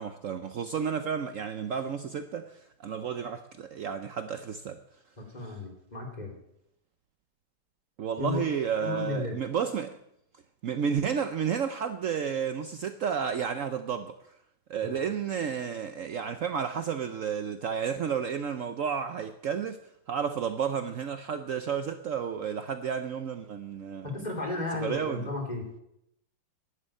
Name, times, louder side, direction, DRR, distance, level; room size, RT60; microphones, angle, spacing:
voice 1, 0.0-4.8 8.0-10.0 10.6-14.2 14.7-19.8 20.1-24.1 24.8-25.3, right 7 dB, 75° right, 0.7 m, -31 dB
voice 2, 5.2-6.3 8.2-8.4 8.8-9.4 14.8-15.1 24.0-25.7, left 2 dB, 20° left, 3.7 m, -34 dB
11.0 x 9.6 x 9.2 m
omnidirectional pair, 2.3 m